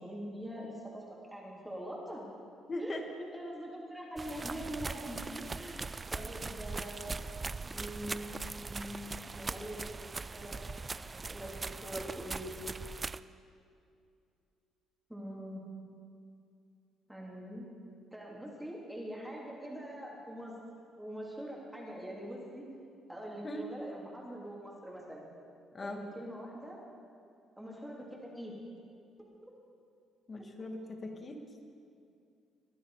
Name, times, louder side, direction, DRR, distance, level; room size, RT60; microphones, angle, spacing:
voice 1, 0.0-2.3 2.8-5.8 6.1-7.1 7.7-8.3 8.6-12.5 15.1-15.6 17.1-17.7 18.1-20.5 21.0-22.6 23.1-25.3 25.8-26.8 27.6-28.5, equal, 5° right, -4 dB, 3.1 m, -43 dB
voice 2, 2.7-3.0 23.4-23.7 25.7-26.0 30.3-31.4, left 1 dB, 35° left, 4 dB, 2.0 m, -39 dB
sound 1, 4.2-13.2, right 3 dB, 25° right, 0.3 m, -40 dB
22.5 x 9.9 x 4.9 m, 2.5 s
cardioid pair, 90°, 0 cm